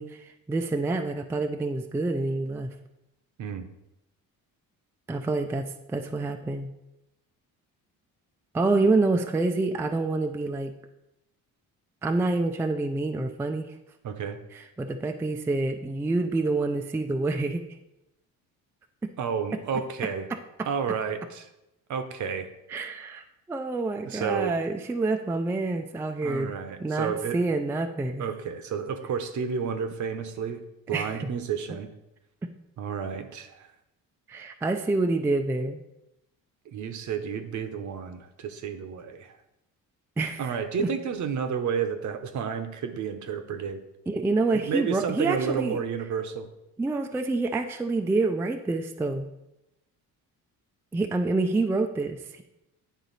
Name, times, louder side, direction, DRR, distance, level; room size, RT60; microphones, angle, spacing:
voice 1, 0.0-2.7 5.1-6.7 8.5-10.7 12.0-13.8 14.5-17.6 22.7-26.5 26.8-28.3 30.9-31.3 34.3-35.8 40.2-40.9 44.1-45.8 46.8-49.3 50.9-52.4, right 3 dB, 5° right, 5 dB, 0.3 m, -27 dB
voice 2, 14.0-14.4 19.2-20.3 20.7-21.5 21.9-22.5 24.0-24.5 26.2-27.4 28.2-31.9 32.8-33.7 36.7-39.4 40.4-43.8 44.5-46.5, right 6 dB, 55° right, 8 dB, 0.8 m, -31 dB
9.3 x 4.0 x 4.0 m, 0.89 s
cardioid pair, 120°, 35 cm